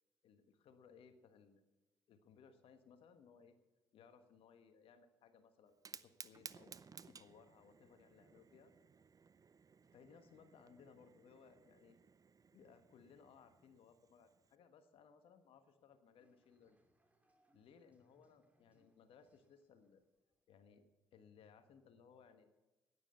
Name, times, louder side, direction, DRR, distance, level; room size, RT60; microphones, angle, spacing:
voice 1, 0.2-1.6 2.1-3.5 3.9-6.8 7.1-8.7 9.9-12.0 12.5-16.8 17.5-20.0 20.5-22.5, left 6 dB, 70° left, 9 dB, 1.3 m, -64 dB
Fire, 5.7-14.6, right 5 dB, 35° right, 0.6 m, -59 dB
sound 1, 16.2-20.7, right 1 dB, 15° right, 2.6 m, -79 dB
9.9 x 9.7 x 8.1 m, 1.1 s
hypercardioid pair, 50°, 10 cm